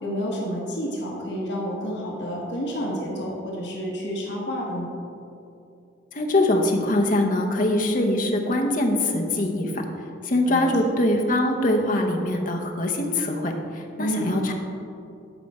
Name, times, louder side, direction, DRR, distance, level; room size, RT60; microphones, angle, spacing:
voice 1, 0.0-4.9 10.4-10.7 14.0-14.3, equal, 60° left, -3 dB, 1.4 m, -29 dB
voice 2, 6.1-9.8 10.2-14.5, left 1 dB, 45° left, 2 dB, 0.9 m, -23 dB
12.5 x 4.8 x 4.2 m, 2.6 s
head